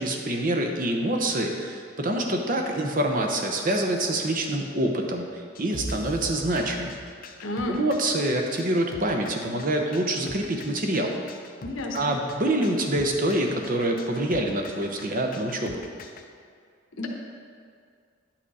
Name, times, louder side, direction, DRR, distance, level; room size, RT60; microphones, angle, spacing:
voice 1, 0.0-6.9 7.7-11.2 11.9-15.8, right 1 dB, 40° right, 2 dB, 0.9 m, -26 dB
sound 1, 5.5-16.2, left 4 dB, 45° left, 0.5 m, -44 dB
sound 2, 5.7-7.5, right 1 dB, 85° right, 1.4 m, -38 dB
voice 2, 7.4-7.8 11.6-12.1 17.0-17.1, left 1 dB, 75° left, 1 dB, 0.9 m, -31 dB
9.9 x 5.9 x 4.1 m, 2.2 s
head